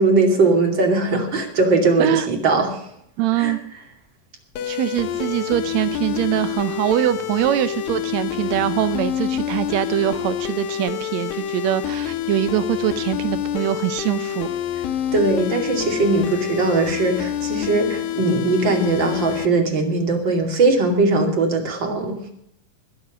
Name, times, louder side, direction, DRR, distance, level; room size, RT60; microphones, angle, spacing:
voice 1, 0.0-2.8 3.4-3.5 15.1-22.3, right 3 dB, 35° right, 2 dB, 2.9 m, -20 dB
voice 2, 3.2-3.6 4.6-14.5, right 13 dB, 90° right, 12 dB, 1.5 m, -23 dB
sound 1, 4.6-19.5, left 11 dB, 80° left, 2.8 m, -27 dB
21.5 x 7.2 x 6.4 m, 0.71 s
omnidirectional pair, 4.0 m